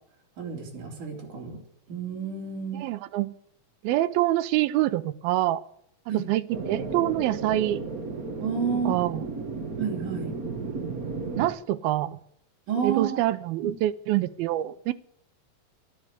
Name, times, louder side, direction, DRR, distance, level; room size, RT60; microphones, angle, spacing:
voice 1, 0.4-1.6 1.9-2.8 6.1-6.3 8.4-8.9 9.8-10.3 12.7-13.2 13.6-13.7, right 6 dB, 60° right, 5.1 m, -30 dB
voice 2, 2.8-3.3 3.8-5.6 6.1-7.8 8.9-9.2 11.4-12.2 12.8-14.9, right 14 dB, 90° right, 2.6 m, -26 dB
sound 1, 6.5-11.5, right 4 dB, 35° right, 1.7 m, -33 dB
12.5 x 12.5 x 8.5 m
omnidirectional pair, 4.2 m